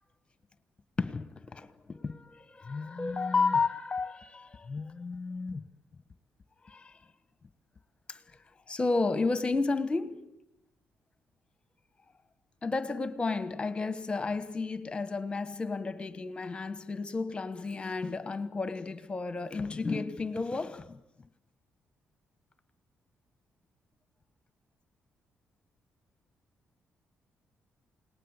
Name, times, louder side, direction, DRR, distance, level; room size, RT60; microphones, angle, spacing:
voice 1, 1.0-5.7 6.6-7.0 8.1-8.2 8.7-10.3 12.6-21.0, left 3 dB, 25° left, 1.3 m, -32 dB
28.5 x 19.0 x 8.2 m
cardioid pair, 105°, 4 cm